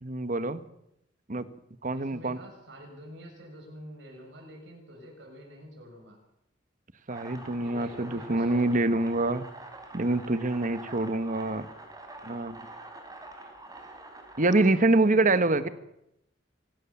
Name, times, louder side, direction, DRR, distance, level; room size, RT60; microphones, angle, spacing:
voice 1, 0.0-0.6 1.3-1.5 1.8-2.4 7.1-9.4 9.9-11.7 12.3-12.6 14.4-15.7, right 2 dB, 45° right, 13 dB, 1.3 m, -25 dB
voice 2, 1.9-6.2 7.6-8.8 14.7-15.7, equal, 70° right, 0 dB, 6.6 m, -47 dB
sound 1, 7.1-14.7, right 2 dB, 20° right, 4.2 m, -46 dB
26.0 x 16.0 x 7.2 m, 0.80 s
head